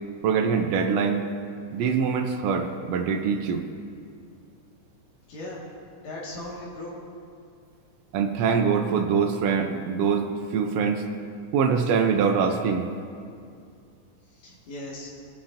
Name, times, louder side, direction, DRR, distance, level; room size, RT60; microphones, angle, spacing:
voice 1, 0.2-1.2 1.7-3.6 8.1-11.0 11.5-12.9, right 6 dB, 75° right, 4 dB, 1.6 m, -24 dB
voice 2, 5.3-5.6 6.0-7.0 14.3-15.1, left 1 dB, 75° left, -5 dB, 3.2 m, -38 dB
20.0 x 7.1 x 2.6 m, 2.3 s
omnidirectional pair, 3.3 m